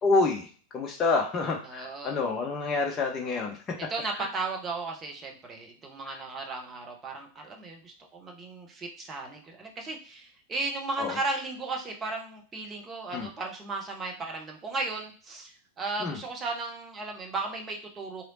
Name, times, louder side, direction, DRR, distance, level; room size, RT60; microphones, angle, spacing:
voice 1, 0.0-0.5 0.7-4.3 6.1-6.2 11.0-11.2 13.1-13.3 16.0-16.2, left 3 dB, 25° left, 1 dB, 0.5 m, -28 dB
voice 2, 1.7-2.1 3.9-18.2, right 3 dB, 20° right, 1 dB, 0.8 m, -35 dB
3.1 x 2.8 x 2.6 m, 0.42 s
figure-of-eight pair, 90°, 0 cm